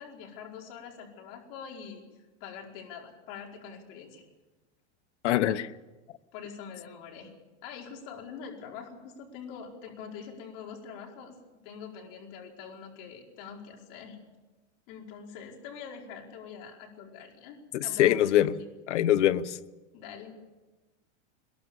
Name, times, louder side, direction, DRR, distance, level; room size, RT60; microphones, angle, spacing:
voice 1, 0.0-2.0 2.4-4.3 6.3-7.3 7.6-11.4 11.6-14.2 14.9-17.6 17.8-18.3 19.9-20.3, left 6 dB, 50° left, 0 dB, 5.1 m, -44 dB
voice 2, 5.2-5.7 17.7-18.5 18.9-19.6, left 12 dB, 85° left, 15 dB, 1.1 m, -23 dB
22.5 x 22.0 x 7.1 m, 1.2 s
supercardioid pair, 155°, 35 cm